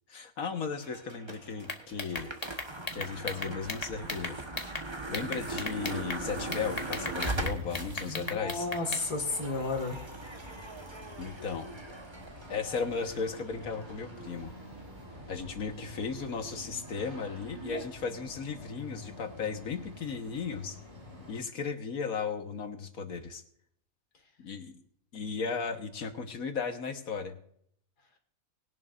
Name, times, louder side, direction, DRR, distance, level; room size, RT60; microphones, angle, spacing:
voice 1, 0.1-2.3 2.9-4.4 5.1-8.7 11.2-11.7 12.5-14.5 15.3-20.8 21.3-23.4 24.4-24.8 25.1-27.4, left 5 dB, 65° left, 6 dB, 1.8 m, -36 dB
sound 1, 0.8-17.9, right 2 dB, 20° right, 1.2 m, -41 dB
sound 2, 1.6-4.8 5.1-6.2 6.5-9.0, left 3 dB, 25° left, 1.2 m, -36 dB
sound 3, 6.3-21.4, left 1 dB, 90° right, 5.4 m, -48 dB
voice 2, 8.1-10.0, left 3 dB, 80° left, 4 dB, 2.6 m, -32 dB
20.5 x 11.0 x 2.6 m, 0.66 s
omnidirectional pair, 1.7 m